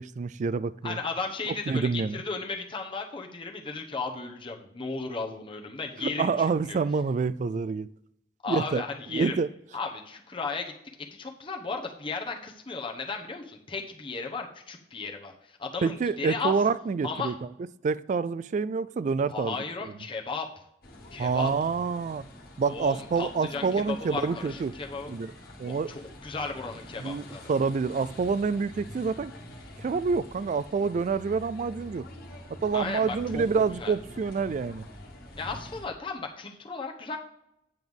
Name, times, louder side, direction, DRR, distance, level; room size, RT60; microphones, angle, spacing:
voice 1, 0.0-1.0 1.7-2.2 6.0-7.9 8.5-8.8 9.1-9.5 15.8-17.3 17.8-19.6 21.2-22.2 22.6-24.7 25.1-25.3 25.6-25.9 27.0-29.3 29.8-32.0 32.6-34.8, right 5 dB, 45° right, 0.3 m, -27 dB
voice 2, 0.8-6.8 8.4-9.4 9.7-10.7 11.1-16.6 17.0-17.3 19.3-20.5 21.1-21.5 22.7-25.1 25.6-27.5 32.7-33.4 33.8-33.9 35.4-37.2, left 4 dB, 30° left, 1.0 m, -35 dB
sound 1, 20.8-35.9, left 1 dB, 60° left, 1.6 m, -46 dB
9.2 x 7.8 x 3.6 m
head